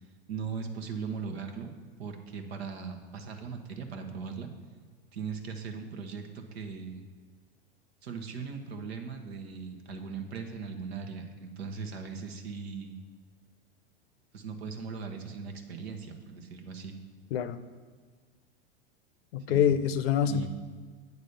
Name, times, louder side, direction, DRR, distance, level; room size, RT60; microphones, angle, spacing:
voice 1, 0.3-1.7 2.0-4.5 5.1-7.1 8.0-13.0 14.3-17.0 19.5-19.7 20.2-20.5, right 5 dB, 80° right, 5 dB, 1.1 m, -39 dB
voice 2, 17.3-17.6 19.3-20.5, left 8 dB, 70° left, 13 dB, 0.6 m, -26 dB
8.3 x 4.1 x 6.6 m, 1.5 s
hypercardioid pair, 110°, 31 cm